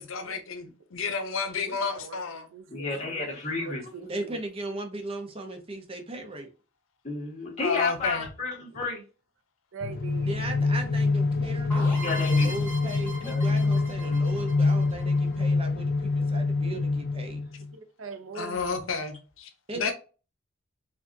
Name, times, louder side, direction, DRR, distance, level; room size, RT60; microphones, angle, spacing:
voice 1, 0.0-2.5 7.6-8.3 18.3-19.5 19.8-19.9, left 5 dB, 80° left, 0.8 m, -31 dB
voice 2, 1.6-3.1 3.7-4.4 9.7-10.3 17.7-18.8, right 4 dB, 75° right, 0.6 m, -42 dB
voice 3, 2.7-3.8 7.0-9.0 12.0-12.5 13.2-13.6, left 3 dB, 35° left, 1.5 m, -32 dB
voice 4, 4.0-6.5 10.2-17.4 19.7-19.9, right 2 dB, 30° right, 0.7 m, -37 dB
sound 1, 9.8-17.7, left 3 dB, 50° left, 0.3 m, -25 dB
sound 2, 11.7-15.4, right 1 dB, 10° left, 1.8 m, -40 dB
4.6 x 2.5 x 2.6 m
head